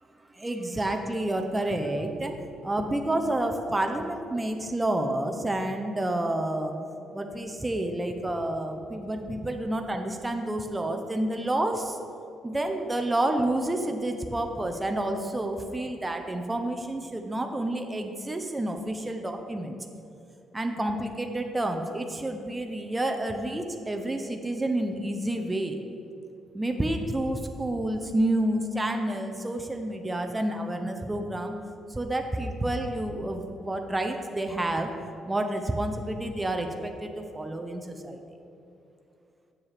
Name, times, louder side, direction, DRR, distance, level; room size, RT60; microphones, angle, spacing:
voice 1, 0.3-2.4 2.6-6.7 7.1-12.0 12.4-19.8 20.5-25.8 26.5-31.5 31.9-34.9 35.3-38.2, right 1 dB, 10° right, 4 dB, 0.3 m, -29 dB
7.1 x 7.1 x 3.2 m, 2.7 s
cardioid pair, 170°, 0 cm